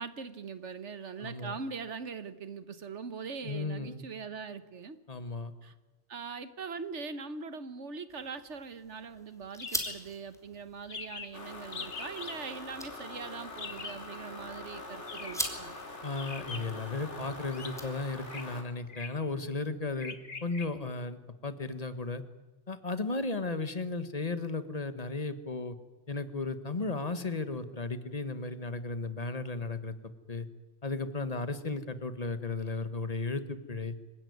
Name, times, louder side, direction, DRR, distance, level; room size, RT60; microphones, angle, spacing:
voice 1, 0.0-5.0 5.6-5.7 6.1-15.8, right 5 dB, 85° right, 12 dB, 1.6 m, -41 dB
voice 2, 1.2-1.5 3.4-4.0 5.1-5.5 16.0-22.2 22.7-25.8 26.1-29.9 30.3-30.5 30.8-33.9, left 3 dB, 35° left, 11 dB, 1.5 m, -35 dB
sound 1, 8.1-18.4, equal, 5° left, 3.2 m, -44 dB
sound 2, 9.6-10.0 10.3-10.4 10.6-10.7 10.9-11.4 11.7-12.4 13.6-14.0 15.0-15.6 16.2-16.8 17.5-17.7 18.2-18.4 18.9-19.2 20.0-20.7, left 4 dB, 60° left, 1.8 m, -42 dB
sound 3, 11.3-18.6, left 2 dB, 85° left, 3.4 m, -44 dB
26.0 x 16.0 x 9.4 m, 1.1 s
omnidirectional pair, 1.2 m